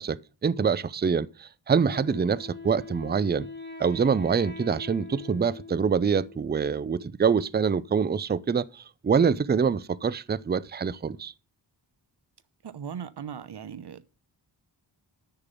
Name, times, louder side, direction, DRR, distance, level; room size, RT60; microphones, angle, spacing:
voice 1, 0.0-3.5 3.8-11.3, right 6 dB, 25° right, 0.4 m, -25 dB
Wind instrument woodwind instrument, 1.8-6.6, left 3 dB, 25° left, 1.8 m, -43 dB
voice 2, 12.6-14.1, right 7 dB, 60° right, 0.9 m, -38 dB
10.0 x 6.7 x 5.3 m
wide cardioid pair, 65°, 45 cm